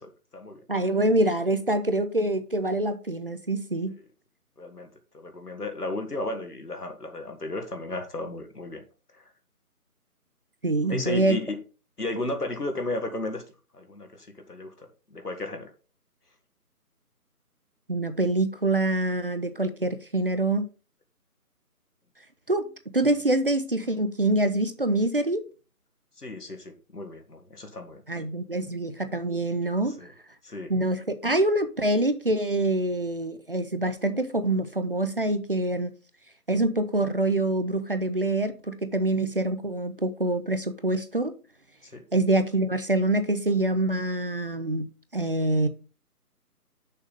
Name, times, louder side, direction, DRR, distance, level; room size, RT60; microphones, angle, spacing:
voice 1, 0.0-0.6 4.6-4.9 5.1-8.8 9.1-9.2 10.8-11.6 12.0-13.4 13.7-15.7 26.2-28.0 30.0-30.1 30.4-30.7 41.9-42.0, left 2 dB, 80° left, 2.0 m, -34 dB
voice 2, 0.7-3.9 10.6-11.4 17.9-20.7 22.5-22.7 22.9-25.4 28.1-30.0 30.7-35.9 36.5-41.3 42.1-44.9 45.1-45.7, right 2 dB, 35° right, 0.7 m, -25 dB
6.6 x 5.8 x 5.1 m
figure-of-eight pair, 155°, 46 cm